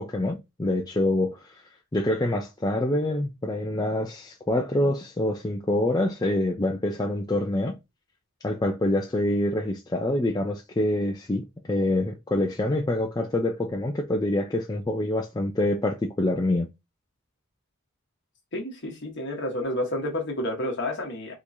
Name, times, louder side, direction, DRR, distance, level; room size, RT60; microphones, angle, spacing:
voice 1, 0.0-1.6 1.9-7.8 8.4-16.7, left 1 dB, 20° left, 0.4 m, -26 dB
voice 2, 18.5-21.3, left 1 dB, 55° left, 1.2 m, -30 dB
3.7 x 3.0 x 2.7 m
head